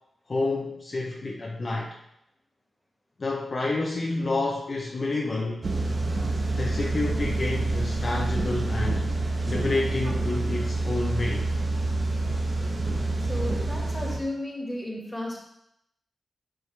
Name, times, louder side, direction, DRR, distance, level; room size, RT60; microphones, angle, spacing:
voice 1, 0.3-2.0 3.2-5.7 6.6-9.1 9.5-11.5, left 2 dB, 40° left, -1 dB, 0.6 m, -29 dB
sound 1, 5.6-14.2, right 2 dB, 40° right, 1.0 m, -27 dB
voice 2, 13.2-15.4, left 1 dB, 10° left, -2 dB, 1.8 m, -33 dB
8.1 x 4.7 x 3.3 m, 0.80 s
wide cardioid pair, 110°, 0 cm